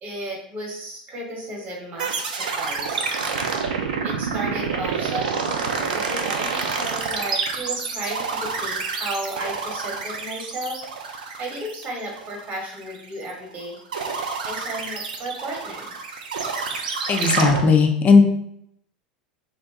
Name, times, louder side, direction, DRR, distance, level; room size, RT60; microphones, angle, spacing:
voice 1, 0.0-2.2 2.5-3.3 4.0-13.8 14.4-15.9, right 1 dB, 30° right, -2 dB, 1.0 m, -34 dB
sound 1, 2.0-13.5 13.9-17.6, right 5 dB, 70° right, 0.4 m, -28 dB
voice 2, 17.1-18.2, left 4 dB, 30° left, 3 dB, 0.5 m, -16 dB
2.7 x 2.2 x 3.5 m, 0.73 s
figure-of-eight pair, 80°, 5 cm